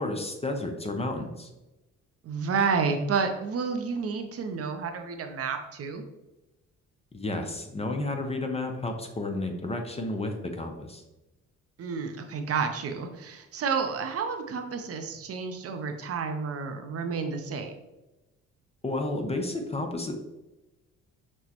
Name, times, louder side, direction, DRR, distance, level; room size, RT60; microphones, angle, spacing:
voice 1, 0.0-1.5 7.1-11.0 18.8-20.1, left 2 dB, 20° left, 4 dB, 0.6 m, -31 dB
voice 2, 2.2-6.0 11.8-17.7, right 5 dB, 50° right, 5 dB, 0.6 m, -30 dB
6.0 x 2.1 x 2.9 m, 1.0 s
cardioid pair, 90°, 30 cm